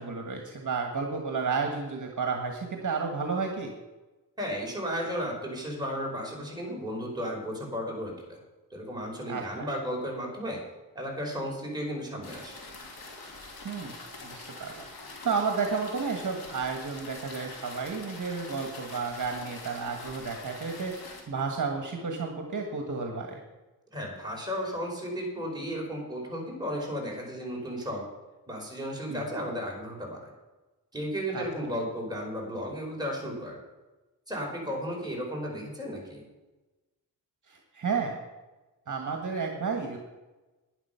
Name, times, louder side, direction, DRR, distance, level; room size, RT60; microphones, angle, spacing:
voice 1, 0.0-3.7 9.3-9.7 13.6-13.9 14.2-14.8 15.2-23.4 29.1-29.2 31.3-31.4 37.5-38.2 38.9-40.0, right 5 dB, 55° right, 3 dB, 1.6 m, -32 dB
voice 2, 4.4-8.4 8.7-10.6 10.9-12.6 23.9-28.0 28.5-30.2 30.9-33.6 34.3-36.2, equal, 10° right, -2 dB, 4.7 m, -34 dB
sound 1, 12.2-21.2, left 3 dB, 80° left, 2.7 m, -44 dB
11.0 x 10.0 x 5.8 m, 1.1 s
wide cardioid pair, 85°, 36 cm